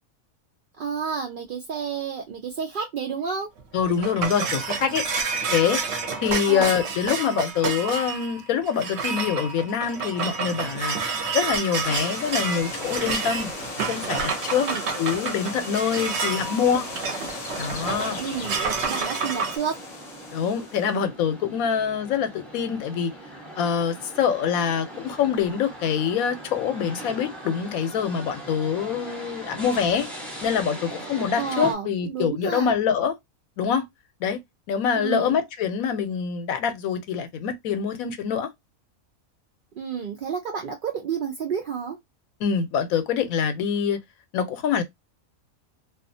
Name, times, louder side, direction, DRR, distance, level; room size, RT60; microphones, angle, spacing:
voice 1, 0.8-3.5 6.5-6.7 14.6-14.9 16.0-16.1 16.5-16.6 18.2-19.8 31.4-32.8 35.0-35.4 39.8-42.0, right 6 dB, 80° right, 0.4 m, -30 dB
sound 1, 3.6-19.6, right 5 dB, 60° right, 0.8 m, -29 dB
voice 2, 3.7-5.0 5.5-5.8 6.2-11.0 11.3-13.5 13.9-14.7 15.0-16.9 17.6-18.3 20.3-23.1 23.5-30.1 30.4-33.2 33.6-33.8 34.2-34.4 34.7-38.5 42.4-44.0 44.3-44.8, left 7 dB, 80° left, 1.0 m, -25 dB
sound 2, 11.8-21.0, left 2 dB, 35° left, 0.6 m, -36 dB
sound 3, 19.4-31.7, right 1 dB, ahead, 0.6 m, -40 dB
2.4 x 2.3 x 2.6 m
omnidirectional pair, 1.5 m